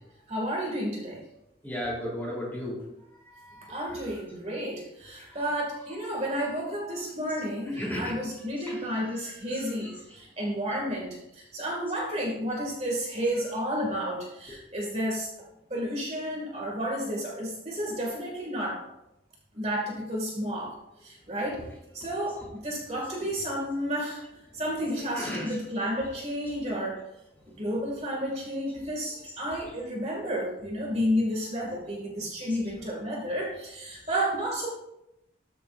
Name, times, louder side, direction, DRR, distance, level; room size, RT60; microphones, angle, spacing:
voice 1, 0.3-1.2 3.7-15.3 15.7-18.8 19.5-20.7 21.0-21.6 21.9-24.2 24.5-27.0 27.5-34.7, equal, 35° right, -2 dB, 2.0 m, -31 dB
voice 2, 1.6-2.8 3.3-4.2 5.2-5.5 5.9-6.7 7.6-10.0 13.3-13.4 21.5-21.6 22.3-22.4 23.2-23.3 24.9-25.6 26.5-26.6 32.5-32.7 34.2-34.3, equal, 10° left, -4 dB, 3.2 m, -38 dB
13.5 x 6.8 x 2.5 m, 0.85 s
head